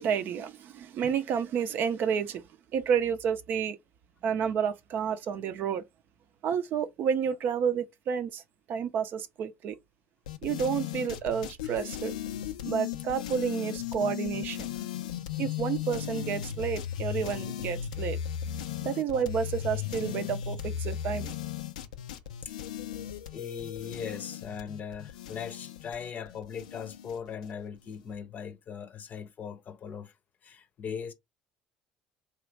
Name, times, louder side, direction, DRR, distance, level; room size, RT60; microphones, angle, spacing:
voice 1, 0.0-2.4 2.7-3.8 4.2-5.8 6.4-8.4 8.7-9.8 10.4-12.1 12.6-14.7 15.4-18.2 18.8-21.3, right 7 dB, 60° right, 0.5 m, -30 dB
sound 1, 10.3-27.5, left 10 dB, 90° left, 0.3 m, -36 dB
voice 2, 23.3-30.1 30.4-31.1, left 7 dB, 45° left, 0.6 m, -39 dB
3.0 x 2.3 x 3.2 m
hypercardioid pair, 65°, 4 cm